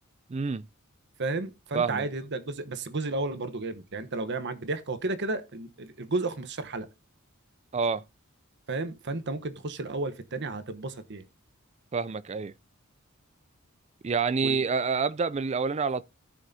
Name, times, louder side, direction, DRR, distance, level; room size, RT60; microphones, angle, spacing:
voice 1, 0.3-0.7 1.7-2.1 7.7-8.0 11.9-12.5 14.0-16.0, right 5 dB, 30° right, 0.4 m, -27 dB
voice 2, 1.2-6.9 8.7-11.2 14.4-14.6, right 2 dB, 55° right, 1.1 m, -32 dB
16.0 x 6.3 x 2.8 m
head